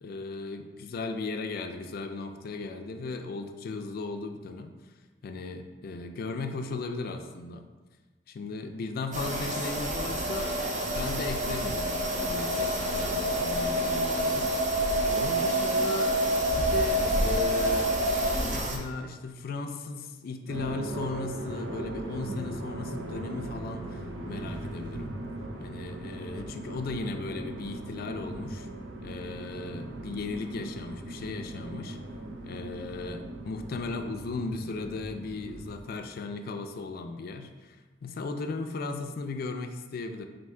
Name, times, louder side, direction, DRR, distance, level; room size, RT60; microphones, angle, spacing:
voice 1, 0.0-4.7 5.2-7.7 8.3-14.8 15.1-16.2 16.6-18.0 18.4-25.1 25.6-28.7 29.0-32.0 32.4-37.8 38.0-40.3, left 3 dB, 55° left, 7 dB, 0.3 m, -36 dB
sound 1, 9.1-18.8, equal, 40° right, 0.6 m, -27 dB
sound 2, 20.5-35.8, right 1 dB, 90° right, 0.5 m, -39 dB
3.6 x 2.6 x 4.3 m, 1.3 s
head